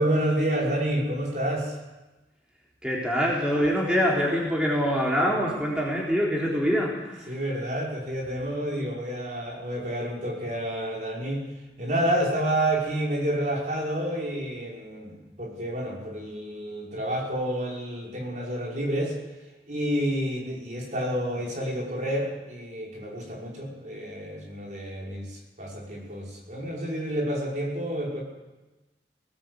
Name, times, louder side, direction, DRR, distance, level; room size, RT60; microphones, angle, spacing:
voice 1, 0.0-1.8 7.3-11.4 11.8-19.2 19.7-28.2, right 1 dB, 45° right, -2 dB, 5.7 m, -29 dB
voice 2, 2.8-7.3, equal, 5° right, -4 dB, 3.7 m, -24 dB
20.0 x 18.0 x 8.2 m, 1.1 s
head